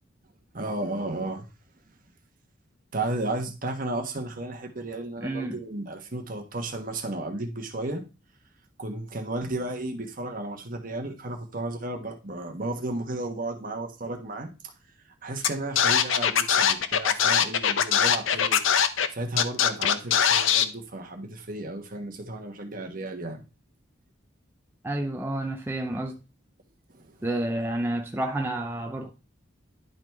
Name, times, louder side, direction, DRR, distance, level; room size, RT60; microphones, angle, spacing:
voice 1, 0.5-1.4 2.9-8.0 8.8-14.5 15.2-18.6 18.9-23.4 26.9-27.1, right 2 dB, 45° right, 1.3 m, -33 dB
voice 2, 5.2-5.6 24.8-26.2 27.2-29.1, right 1 dB, 10° right, 0.6 m, -30 dB
Scratching (performance technique), 15.4-15.5 15.8-19.1 19.4-20.6, left 8 dB, 80° left, 0.7 m, -21 dB
11.0 x 4.0 x 4.6 m
head